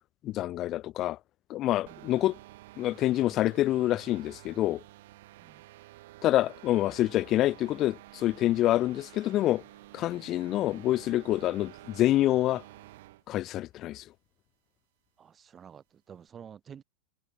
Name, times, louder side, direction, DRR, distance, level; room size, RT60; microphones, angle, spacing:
voice 1, 0.2-1.2 1.5-2.4 2.8-4.8 6.2-9.6 9.9-12.6 13.3-14.0, left 14 dB, 35° left, 0.5 m, -27 dB
sound 1, 1.9-13.2, right 17 dB, 55° right, 0.9 m, -51 dB
voice 2, 15.2-16.8, right 8 dB, 25° right, 0.9 m, -49 dB
figure-of-eight pair, 90°, 0 cm